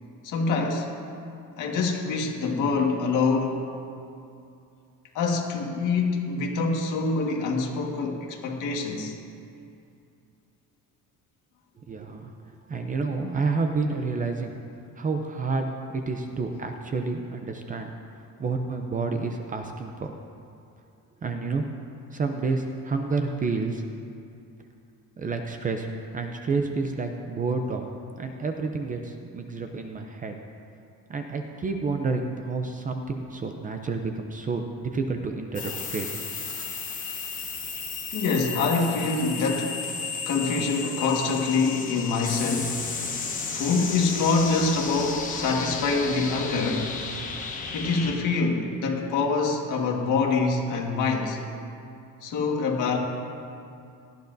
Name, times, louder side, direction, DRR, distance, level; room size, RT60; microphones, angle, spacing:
voice 1, 0.2-0.9 1.6-3.6 5.1-9.1 38.1-39.8 40.2-42.8 43.5-47.0 47.7-51.4 52.2-53.0, left 4 dB, 60° left, 0 dB, 1.7 m, -25 dB
voice 2, 11.8-12.4 12.7-14.6 15.0-17.9 18.1-20.1 21.2-21.7 22.1-23.8 25.2-25.9 26.1-27.9 28.2-30.4 31.1-36.1, right 4 dB, 25° right, 4 dB, 0.5 m, -29 dB
sound 1, 35.5-48.1, left 5 dB, 25° left, 1.0 m, -33 dB
18.5 x 13.0 x 2.6 m, 2.5 s
cardioid pair, 175°, 35 cm